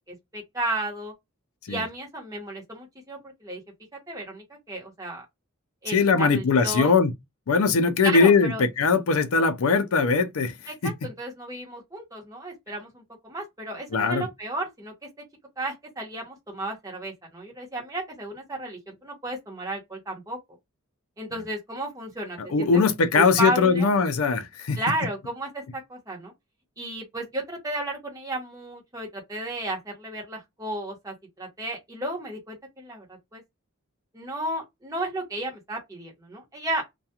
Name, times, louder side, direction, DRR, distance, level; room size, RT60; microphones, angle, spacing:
voice 1, 0.1-1.1 1.7-3.6 4.1-5.2 5.8-6.9 8.0-8.6 10.7-14.9 15.6-20.4 21.2-22.8 23.1-23.9 24.7-26.3 26.8-33.1 33.3-33.4 34.1-36.8, right 1 dB, 15° right, 1.0 m, -33 dB
voice 2, 5.9-7.1 7.5-10.6 10.8-10.9 13.9-14.3 22.5-24.8, left 4 dB, 75° left, 0.5 m, -21 dB
2.3 x 2.2 x 2.8 m
head